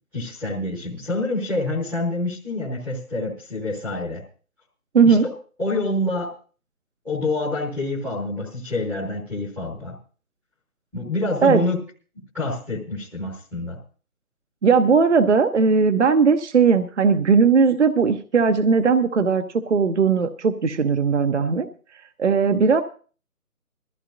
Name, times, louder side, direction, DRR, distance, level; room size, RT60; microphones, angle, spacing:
voice 1, 0.1-4.2 5.0-5.3 5.6-6.3 7.0-9.9 10.9-11.8 12.1-13.8, left 2 dB, 5° left, -8 dB, 1.1 m, -27 dB
voice 2, 14.6-21.7 22.2-22.8, right 5 dB, 50° right, 8 dB, 1.0 m, -18 dB
21.5 x 14.5 x 2.6 m, 0.39 s
figure-of-eight pair, 165°, 44 cm